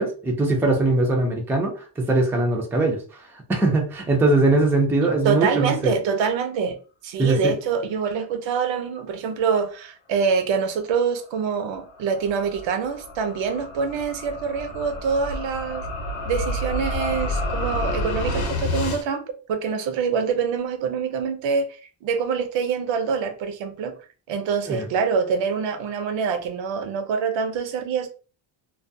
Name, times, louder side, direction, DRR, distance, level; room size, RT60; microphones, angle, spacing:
voice 1, 0.0-3.0 3.5-5.9 7.2-7.6 24.7-24.8, right 2 dB, 5° right, 0.3 m, -21 dB
voice 2, 5.2-6.8 7.0-15.9 16.2-24.0 24.3-28.1, right 6 dB, 70° right, 0.6 m, -25 dB
sound 1, 11.2-19.0, left 1 dB, 85° left, 0.8 m, -29 dB
2.3 x 2.2 x 2.6 m
cardioid pair, 140°, 47 cm